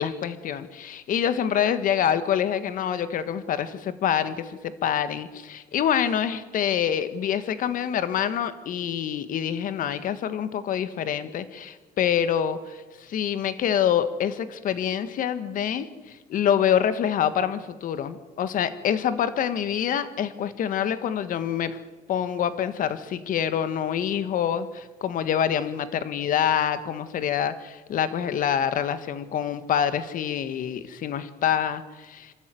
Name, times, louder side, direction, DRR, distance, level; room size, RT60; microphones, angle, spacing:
voice 1, 0.0-21.8 22.1-32.3, left 9 dB, 60° left, 12 dB, 1.5 m, -26 dB
27.0 x 13.0 x 9.2 m, 1.3 s
cardioid pair, 125°, 16 cm